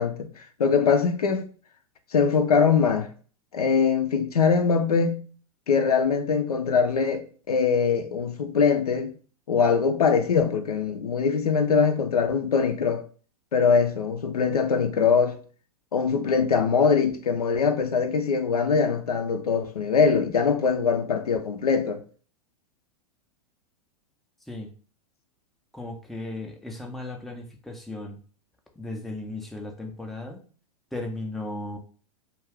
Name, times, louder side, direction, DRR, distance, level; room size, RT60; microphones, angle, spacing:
voice 1, 0.0-1.4 2.1-3.1 3.5-5.2 5.7-9.1 9.5-13.0 13.5-15.4 15.9-22.0, left 5 dB, 85° left, 0.4 m, -22 dB
voice 2, 25.7-28.2 28.8-30.4 30.9-31.8, left 2 dB, ahead, 0.4 m, -36 dB
2.3 x 2.3 x 3.3 m
hypercardioid pair, 105°, 19 cm